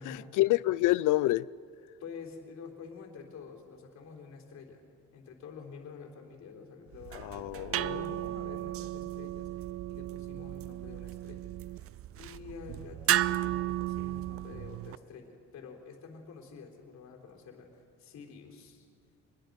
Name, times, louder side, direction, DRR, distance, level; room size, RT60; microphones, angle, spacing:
voice 1, 0.0-1.5 7.1-8.2, left 17 dB, 85° left, 0.5 m, -28 dB
voice 2, 2.0-4.8 5.1-9.5 9.9-11.9 12.1-18.9, left 5 dB, 60° left, 3.8 m, -48 dB
sound 1, 6.9-15.0, right 14 dB, 50° right, 0.4 m, -34 dB
25.5 x 21.5 x 5.2 m
cardioid pair, 135°, 30 cm